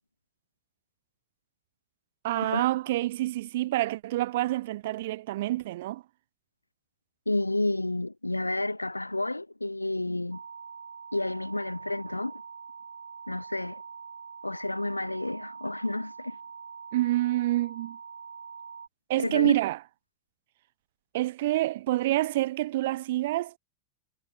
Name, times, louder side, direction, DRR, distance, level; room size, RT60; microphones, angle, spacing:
voice 1, 2.2-6.0 16.9-18.0 19.1-19.8 21.1-23.5, right 16 dB, 55° right, 0.3 m, -27 dB
voice 2, 7.3-10.4 11.1-12.4 13.3-13.8 14.4-16.4 19.2-19.6, left 2 dB, 85° left, 0.9 m, -30 dB
sound 1, 10.3-18.9, right 6 dB, 75° right, 0.9 m, -44 dB
figure-of-eight pair, 90°, 0 cm